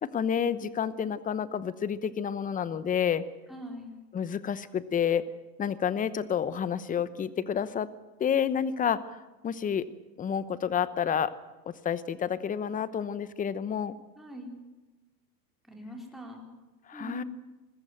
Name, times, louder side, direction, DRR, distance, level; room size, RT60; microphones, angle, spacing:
voice 1, 0.0-3.2 4.1-5.2 5.6-7.9 8.2-9.9 10.2-11.3 11.7-14.0 16.9-17.2, left 8 dB, 15° left, 16 dB, 0.9 m, -29 dB
voice 2, 3.5-4.0 14.2-14.5 15.7-16.5 16.9-17.2, right 1 dB, ahead, 0 dB, 4.0 m, -41 dB
21.0 x 15.0 x 9.2 m, 1.1 s
hypercardioid pair, 125°, 48 cm